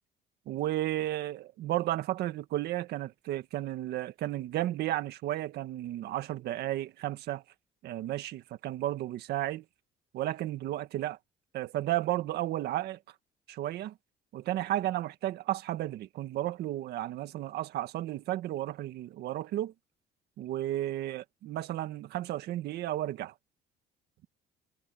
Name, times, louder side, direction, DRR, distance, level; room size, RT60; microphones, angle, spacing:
voice 1, 0.5-7.4 7.8-9.6 10.1-11.2 11.5-13.0 13.5-13.9 14.3-19.7 20.4-23.3, right 14 dB, 75° right, 1.8 m, -33 dB
cardioid pair, 110°, 17 cm